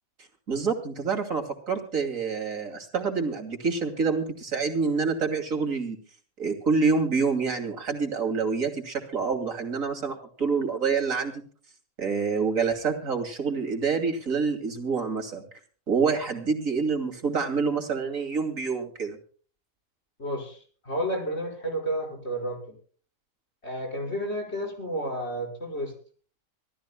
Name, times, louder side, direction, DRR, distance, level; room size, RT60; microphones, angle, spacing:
voice 1, 0.5-6.0 6.4-11.4 12.0-15.4 15.9-19.2, right 5 dB, 75° right, 4 dB, 3.1 m, -27 dB
voice 2, 20.2-22.6 23.6-25.9, equal, 50° left, 1 dB, 5.5 m, -31 dB
26.0 x 15.0 x 2.3 m, 0.43 s
omnidirectional pair, 1.4 m